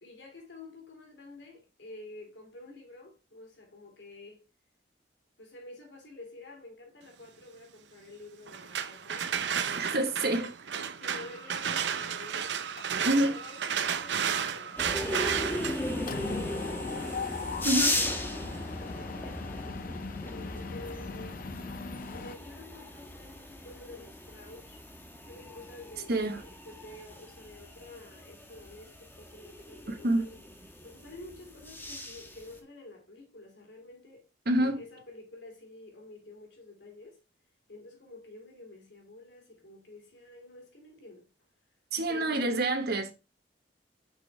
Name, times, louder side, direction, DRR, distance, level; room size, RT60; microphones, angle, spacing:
voice 1, 0.0-4.4 5.4-10.4 11.0-12.6 13.1-17.2 17.9-21.5 22.1-24.8 25.3-30.4 30.8-34.3 34.6-37.2 37.7-41.3 42.1-42.7, left 2 dB, 85° left, 2.7 m, -49 dB
sound 1, 8.5-18.3, right 7 dB, 85° right, 0.6 m, -33 dB
voice 2, 9.8-10.5 13.0-13.4 17.6-18.0 26.1-26.4 29.9-30.3 34.4-34.8 41.9-43.1, right 1 dB, 65° right, 1.3 m, -27 dB
Mechanisms, 12.8-13.4 13.7-13.9 14.2-22.3, left 5 dB, 55° left, 0.5 m, -40 dB
sound 2, 14.8-32.6, left 1 dB, 10° left, 1.1 m, -37 dB
6.8 x 5.5 x 3.3 m
head